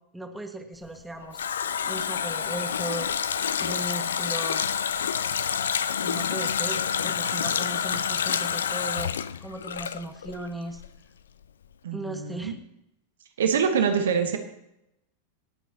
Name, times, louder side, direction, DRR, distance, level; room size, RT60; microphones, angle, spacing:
voice 1, 0.1-1.4 1.9-3.1 3.6-4.6 6.0-9.1 9.4-10.8 11.9-12.5, right 2 dB, 5° right, 4 dB, 1.8 m, -37 dB
Water tap faucet, 0.9-10.5 10.8-10.9, left 7 dB, 65° left, 0.5 m, -28 dB
voice 2, 11.8-12.5 13.4-14.4, right 6 dB, 65° right, 6 dB, 1.5 m, -25 dB
27.0 x 9.1 x 2.9 m, 0.83 s
figure-of-eight pair, 90°, 0 cm